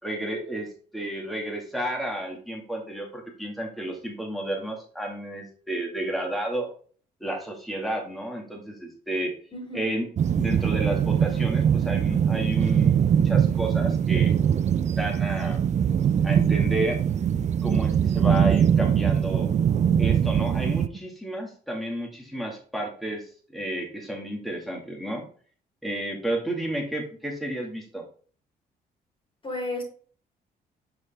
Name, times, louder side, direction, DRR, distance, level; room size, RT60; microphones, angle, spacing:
voice 1, 0.0-6.7 7.2-9.3 9.7-10.1 10.4-14.3 15.0-15.6 16.2-17.1 17.6-19.5 20.0-25.3 25.8-28.0, right 1 dB, ahead, 0 dB, 2.2 m, -31 dB
voice 2, 9.5-9.9 29.4-29.8, left 2 dB, 30° left, -1 dB, 3.2 m, -33 dB
sound 1, 10.2-20.9, right 8 dB, 45° right, 0.5 m, -22 dB
6.8 x 4.8 x 3.7 m, 0.44 s
cardioid pair, 85°, 17 cm